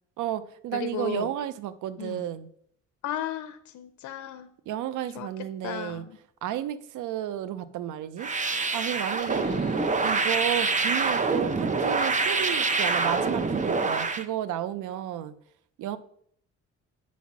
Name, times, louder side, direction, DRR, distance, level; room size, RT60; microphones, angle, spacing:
voice 1, 0.2-2.5 4.7-6.0 6.4-8.3 8.7-9.5 10.0-15.3 15.8-16.0, right 11 dB, 80° right, 14 dB, 0.6 m, -32 dB
voice 2, 0.8-1.3 2.0-2.2 3.0-4.5 5.1-5.3 5.6-6.2 9.3-9.8, left 11 dB, 75° left, 6 dB, 0.6 m, -35 dB
sound 1, 8.2-14.3, right 4 dB, 25° right, 0.7 m, -26 dB
8.2 x 4.1 x 6.0 m, 0.67 s
cardioid pair, 90°, 30 cm